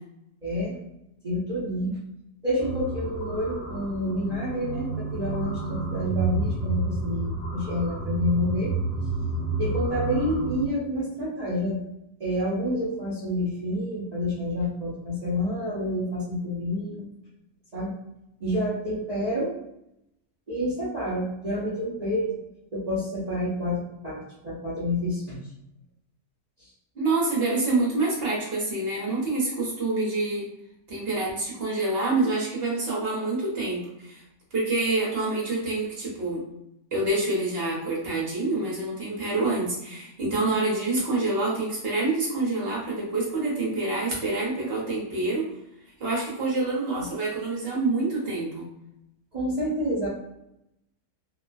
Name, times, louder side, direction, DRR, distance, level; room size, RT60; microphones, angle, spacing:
voice 1, 0.4-0.8 1.2-2.0 2.4-8.7 9.6-11.8 12.2-17.1 17.7-17.9 18.4-19.5 20.5-22.3 22.7-25.4 46.9-47.0 49.3-50.1, left 1 dB, 75° right, -9 dB, 0.3 m, -28 dB
sound 1, 2.6-10.6, right 3 dB, 50° left, 0.9 m, -30 dB
voice 2, 26.9-30.5 30.9-34.2 34.5-36.4 36.9-45.4 46.0-48.6, right 2 dB, 45° right, -5 dB, 1.0 m, -27 dB
3.0 x 2.1 x 2.5 m, 0.84 s
omnidirectional pair, 1.7 m